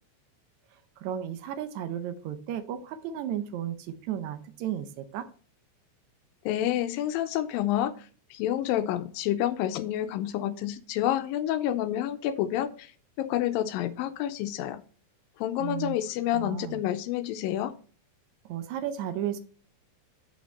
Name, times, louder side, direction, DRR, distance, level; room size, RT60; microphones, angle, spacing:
voice 1, 1.0-5.3 15.6-16.0 16.3-16.8 18.4-19.4, right 10 dB, 75° right, 10 dB, 1.7 m, -34 dB
voice 2, 6.5-7.9 8.3-12.9 13.2-14.8 15.4-17.7, left 12 dB, 85° left, 11 dB, 2.3 m, -28 dB
9.1 x 5.8 x 4.2 m, 0.40 s
omnidirectional pair, 4.2 m